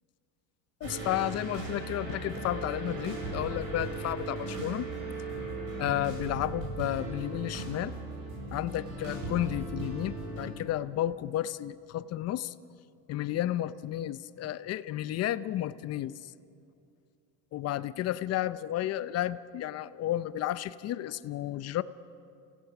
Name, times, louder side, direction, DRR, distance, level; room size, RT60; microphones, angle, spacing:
voice 1, 0.8-4.9 5.8-7.9 8.5-12.5 13.1-16.1 17.5-21.8, left 13 dB, 40° left, 15 dB, 0.6 m, -32 dB
sound 1, 0.8-10.5, right 2 dB, 85° right, 7.1 m, -37 dB
28.5 x 17.0 x 6.0 m, 2.4 s
supercardioid pair, 120°, 37 cm